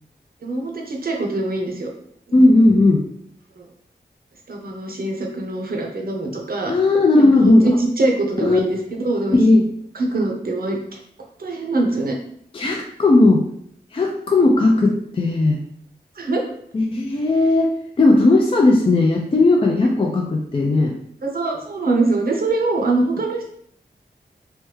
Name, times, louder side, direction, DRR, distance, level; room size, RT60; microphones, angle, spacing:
voice 1, 0.4-1.9 2.3-2.4 3.6-3.7 4.5-6.7 7.2-9.4 9.9-11.0 11.4-12.1 16.2-16.4 21.2-23.5, right 2 dB, 60° right, 1 dB, 0.7 m, -23 dB
voice 2, 2.3-3.0 6.7-7.6 8.4-8.6 9.3-9.7 12.5-13.4 13.9-15.6 16.7-17.7 18.0-21.0, left 2 dB, 30° left, 1 dB, 0.4 m, -16 dB
3.4 x 2.1 x 3.1 m, 0.66 s
wide cardioid pair, 80°, 17 cm